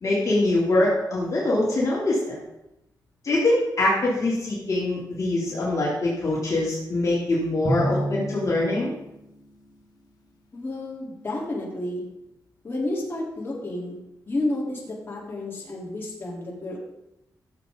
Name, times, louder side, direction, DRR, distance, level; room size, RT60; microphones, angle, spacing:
voice 1, 0.0-2.4 3.2-8.9, left 2 dB, 45° left, -6 dB, 3.3 m, -23 dB
Drum, 7.6-9.8, right 1 dB, 70° left, 2.2 m, -31 dB
voice 2, 10.5-12.0 12.6-14.0 14.3-16.8, left 1 dB, 30° left, -5 dB, 3.9 m, -31 dB
15.0 x 7.7 x 4.0 m, 0.90 s
wide cardioid pair, 120°, 7 cm